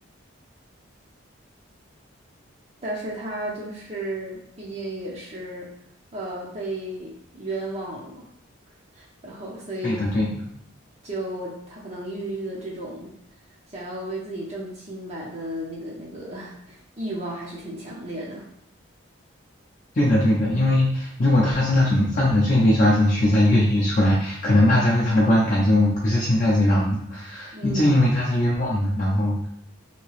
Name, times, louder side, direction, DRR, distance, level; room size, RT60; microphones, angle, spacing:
voice 1, 2.8-5.7 6.1-8.3 8.9-10.0 11.0-13.1 13.7-18.5 27.5-27.9 28.2-28.3, right 1 dB, 30° right, -5 dB, 0.5 m, -34 dB
voice 2, 9.8-10.3 19.9-29.4, left 1 dB, 40° left, -6 dB, 0.5 m, -20 dB
2.8 x 2.8 x 3.1 m, 0.74 s
head